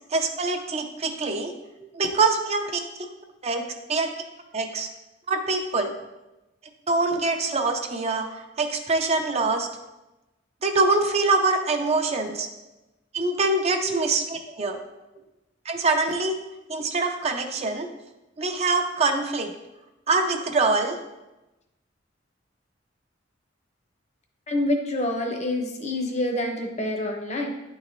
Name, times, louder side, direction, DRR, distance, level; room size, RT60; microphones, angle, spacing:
voice 1, 0.1-1.5 1.9-3.1 3.4-4.1 4.5-4.9 5.3-5.9 6.9-9.7 10.6-12.5 13.1-14.8 15.7-16.4 16.7-17.9 18.4-19.5 20.1-21.0, right 3 dB, 35° right, 5 dB, 0.5 m, -24 dB
voice 2, 24.5-27.5, left 1 dB, 40° left, 2 dB, 0.8 m, -27 dB
9.7 x 3.8 x 3.0 m, 1.0 s
head